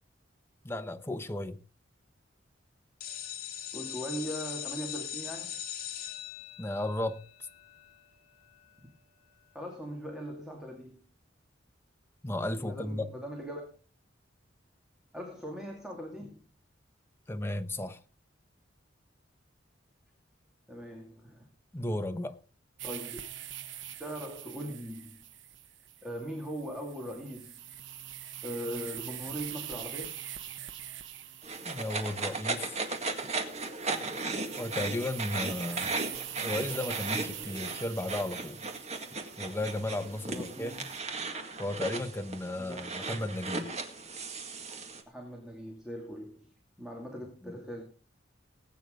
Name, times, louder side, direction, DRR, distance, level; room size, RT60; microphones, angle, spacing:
voice 1, 0.6-1.6 6.6-7.2 12.2-13.1 17.3-18.0 21.7-22.4 31.6-32.8 34.6-35.9 36.4-38.6 39.4-40.9 41.6-43.7 47.4-47.5, left 1 dB, 10° left, 1.0 m, -34 dB
sound 1, 3.0-8.6, left 10 dB, 55° left, 2.3 m, -41 dB
voice 2, 3.7-5.6 9.5-11.0 12.6-13.6 15.1-16.4 20.7-21.5 22.8-23.2 24.0-25.2 26.0-27.6 28.4-30.2 40.2-40.7 42.6-42.9 45.1-46.5 46.8-47.8, equal, 5° right, 2.5 m, -40 dB
sound 2, 22.8-41.0, right 11 dB, 75° right, 1.0 m, -44 dB
sound 3, 31.4-45.0, right 3 dB, 35° right, 1.9 m, -36 dB
20.0 x 9.2 x 3.8 m
head